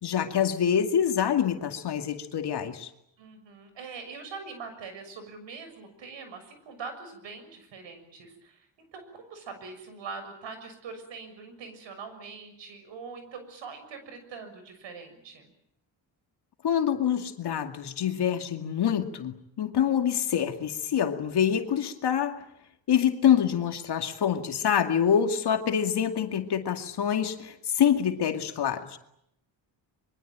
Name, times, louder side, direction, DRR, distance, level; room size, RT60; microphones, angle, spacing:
voice 1, 0.0-2.9 16.6-22.4 22.9-29.0, left 8 dB, 60° left, 5 dB, 2.4 m, -26 dB
voice 2, 3.2-15.5, right 5 dB, 70° right, 9 dB, 6.7 m, -43 dB
24.0 x 23.5 x 8.9 m, 0.77 s
cardioid pair, 85°, 45 cm